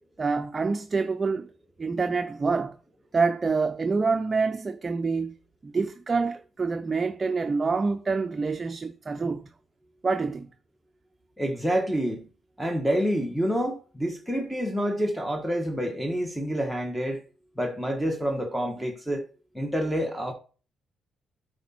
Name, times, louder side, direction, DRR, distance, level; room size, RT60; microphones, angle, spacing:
voice 1, 0.2-1.5 1.8-2.8 3.1-5.4 5.6-9.5 10.0-10.5, right 4 dB, 30° right, 0.6 m, -26 dB
voice 2, 11.4-12.3 12.6-17.2 17.6-19.2 19.5-20.3, equal, ahead, 1.4 m, -28 dB
9.0 x 4.9 x 4.3 m
cardioid pair, 90°, 0 cm